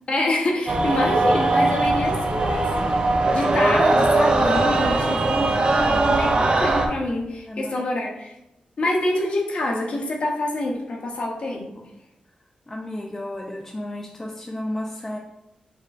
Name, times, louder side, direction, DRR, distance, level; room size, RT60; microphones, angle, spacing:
voice 1, 0.1-2.9 3.3-5.6 6.0-8.3 8.8-11.8, left 1 dB, 50° left, 0 dB, 0.9 m, -26 dB
sound 1, 0.7-6.9, right 2 dB, 40° right, 0.5 m, -20 dB
voice 2, 4.7-6.2 7.5-8.1 12.7-15.2, left 1 dB, 15° left, 0 dB, 0.4 m, -33 dB
5.3 x 3.8 x 2.4 m, 0.87 s
wide cardioid pair, 160°, 3 cm